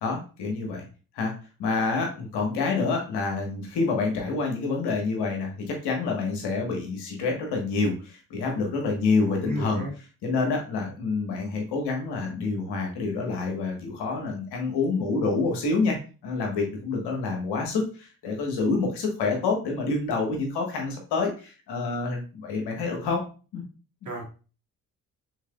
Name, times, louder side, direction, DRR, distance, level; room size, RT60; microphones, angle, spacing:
voice 1, 0.0-0.8 1.1-1.3 1.6-9.8 10.2-16.0 16.2-23.2 23.5-23.6, left 4 dB, 70° left, 1 dB, 1.4 m, -27 dB
voice 2, 9.3-9.9 24.0-24.2, equal, 45° right, -1 dB, 1.9 m, -33 dB
4.6 x 3.6 x 2.3 m, 0.34 s
hypercardioid pair, 50°, 41 cm